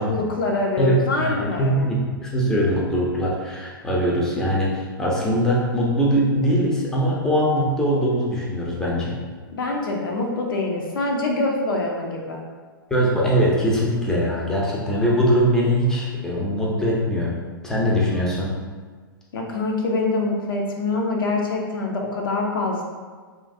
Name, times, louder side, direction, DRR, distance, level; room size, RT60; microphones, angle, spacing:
voice 1, 0.0-1.9 9.5-12.4 19.3-22.8, left 2 dB, 65° left, 0 dB, 0.5 m, -25 dB
voice 2, 1.2-9.2 12.9-17.3 17.6-18.5, equal, 5° left, -5 dB, 0.6 m, -22 dB
3.1 x 2.5 x 2.5 m, 1.5 s
figure-of-eight pair, 110°, 12 cm